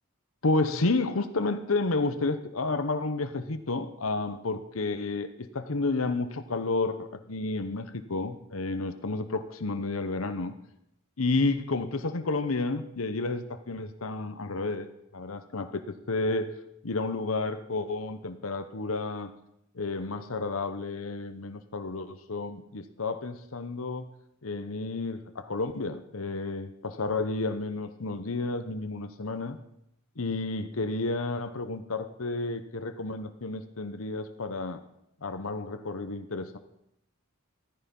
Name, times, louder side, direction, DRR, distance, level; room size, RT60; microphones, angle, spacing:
voice 1, 0.4-10.5 11.2-14.9 15.1-16.6 16.8-19.3 19.7-24.1 24.4-29.6 30.2-34.8 35.2-36.6, left 3 dB, 80° left, 9 dB, 1.0 m, -31 dB
15.5 x 14.5 x 5.4 m, 0.79 s
head